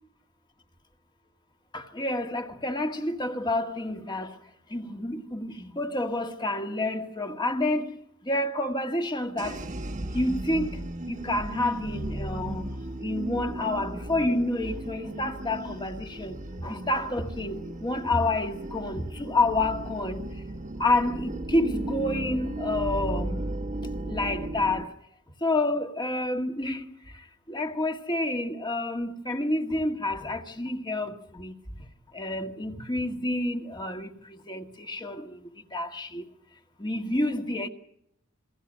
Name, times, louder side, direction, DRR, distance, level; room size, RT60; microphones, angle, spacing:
voice 1, 1.7-8.0 8.2-9.7 10.1-12.7 13.0-20.3 20.8-23.5 24.1-24.9 25.4-31.9 32.1-36.3 36.8-37.7, left 2 dB, 20° left, 1.7 m, -29 dB
sound 1, 9.4-24.8, right 1 dB, 35° right, 1.2 m, -35 dB
28.0 x 22.5 x 6.3 m
head